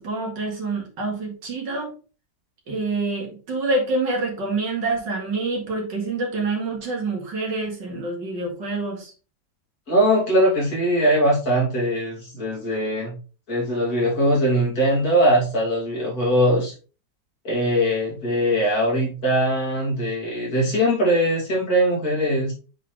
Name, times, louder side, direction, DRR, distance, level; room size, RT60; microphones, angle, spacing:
voice 1, 0.0-1.9 2.7-9.1, right 3 dB, 80° right, 0 dB, 2.6 m, -27 dB
voice 2, 9.9-13.2 13.5-16.7 17.4-22.5, equal, 55° left, -4 dB, 3.2 m, -21 dB
8.1 x 4.2 x 3.2 m, 0.35 s
omnidirectional pair, 1.9 m